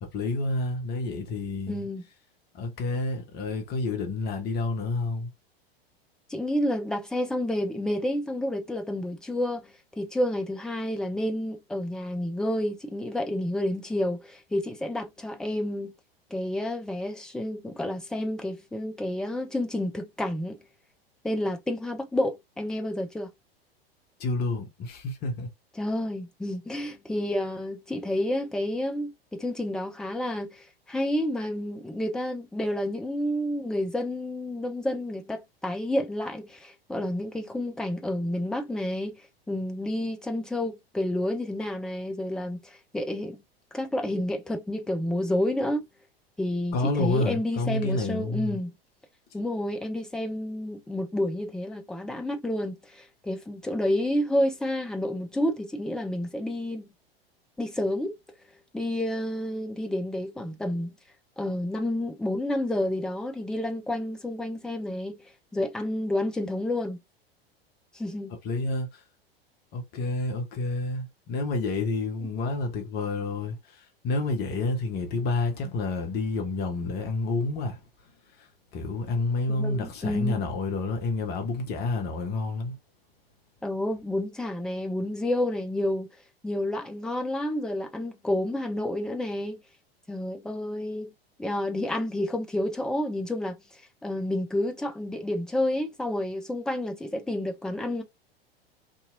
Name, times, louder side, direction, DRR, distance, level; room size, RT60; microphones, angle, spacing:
voice 1, 0.0-1.9 2.5-5.3 24.2-25.5 46.7-48.6 68.4-69.0 69.7-77.8 78.4-82.7, left 3 dB, 30° left, 0.9 m, -29 dB
voice 2, 1.7-2.0 6.3-15.9 16.3-20.6 21.2-23.3 25.8-39.2 39.5-43.4 43.7-45.8 46.4-48.7 49.3-56.9 57.6-58.1 58.7-61.0 61.4-65.2 65.5-67.0 67.9-68.3 79.5-80.5 83.6-86.1 86.4-89.6 90.1-91.1 91.4-93.6 94.0-98.0, left 1 dB, ahead, 0.4 m, -30 dB
2.8 x 2.7 x 2.5 m
figure-of-eight pair, 90°, 30 cm